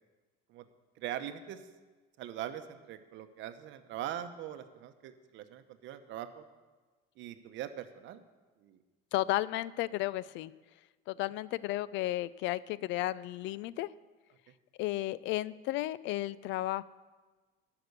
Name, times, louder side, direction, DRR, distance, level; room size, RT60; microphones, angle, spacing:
voice 1, 1.0-1.6 2.2-6.4 7.2-8.2 8.6-8.8, right 11 dB, 65° right, 10 dB, 0.9 m, -42 dB
voice 2, 9.1-10.5 11.1-13.9 14.8-16.8, left 16 dB, 65° left, 19 dB, 0.4 m, -33 dB
12.0 x 5.9 x 8.1 m, 1.3 s
cardioid pair, 130°, 21 cm